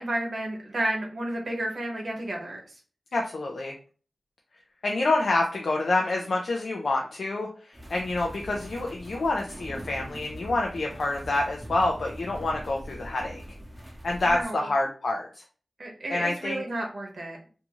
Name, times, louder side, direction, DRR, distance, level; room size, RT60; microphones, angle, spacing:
voice 1, 0.0-2.6 14.2-14.7 15.8-17.4, right 1 dB, 70° right, 0 dB, 0.9 m, -31 dB
voice 2, 3.1-3.7 4.8-13.4 14.0-15.4 16.1-16.6, left 2 dB, 85° left, 0 dB, 0.4 m, -27 dB
sound 1, 7.7-14.4, equal, 25° right, 0.8 m, -42 dB
2.6 x 2.3 x 2.8 m, 0.39 s
cardioid pair, 40°, 0 cm